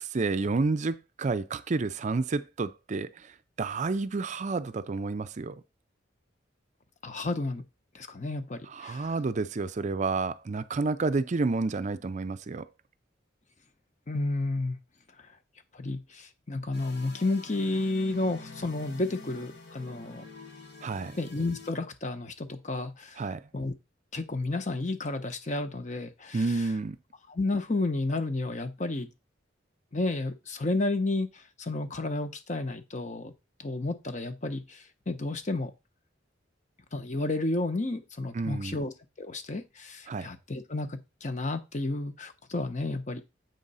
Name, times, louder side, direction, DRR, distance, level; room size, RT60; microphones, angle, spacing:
voice 1, 0.0-5.6 8.7-12.7 20.8-21.2 23.2-23.5 26.3-27.0 38.3-38.8 40.1-40.3, right 3 dB, 40° right, 0.4 m, -30 dB
voice 2, 7.0-7.6 7.9-9.1 14.1-14.8 15.7-20.2 21.2-23.2 23.5-23.7 24.1-26.4 27.3-29.1 29.9-33.3 33.6-35.7 36.9-38.9 39.2-43.2, left 2 dB, 40° left, 0.9 m, -31 dB
sound 1, 16.7-21.7, left 3 dB, 65° left, 2.0 m, -47 dB
7.9 x 3.7 x 5.5 m
head